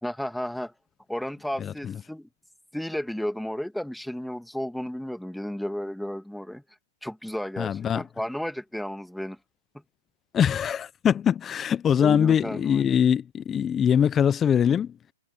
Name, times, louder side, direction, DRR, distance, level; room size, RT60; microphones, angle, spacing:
voice 1, 0.0-0.7 1.1-2.3 2.7-6.6 7.0-9.4 12.0-12.9, equal, ahead, 2.3 m, -33 dB
voice 2, 1.6-1.9 7.6-8.0 10.3-14.9, left 8 dB, 20° left, 0.8 m, -23 dB
hypercardioid pair, 125°, 0 cm